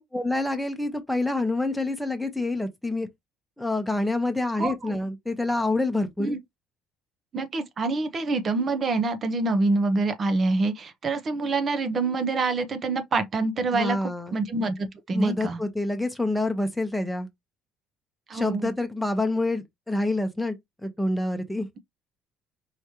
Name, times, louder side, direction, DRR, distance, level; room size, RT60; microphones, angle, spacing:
voice 1, 0.0-3.1 3.6-6.4 13.7-14.4 15.1-17.3 18.3-20.6 20.8-21.7, left 2 dB, ahead, 1.0 m, -27 dB
voice 2, 4.6-5.0 6.2-6.4 7.3-14.0 14.3-15.6 18.3-18.7, right 3 dB, 35° right, 0.8 m, -26 dB
4.9 x 3.1 x 2.8 m
cardioid pair, 135°, 0 cm